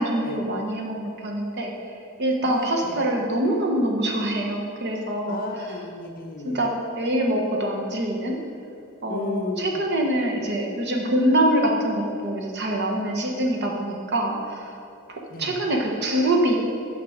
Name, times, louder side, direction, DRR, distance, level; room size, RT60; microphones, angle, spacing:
voice 1, 0.0-1.7 2.2-5.4 6.4-8.4 9.0-14.7 15.1-16.6, right 1 dB, 50° right, 1 dB, 1.1 m, -24 dB
voice 2, 2.4-3.2 5.3-6.6 9.1-9.9 15.3-15.6, left 3 dB, 40° left, 5 dB, 0.6 m, -34 dB
8.5 x 5.8 x 5.0 m, 2.6 s
head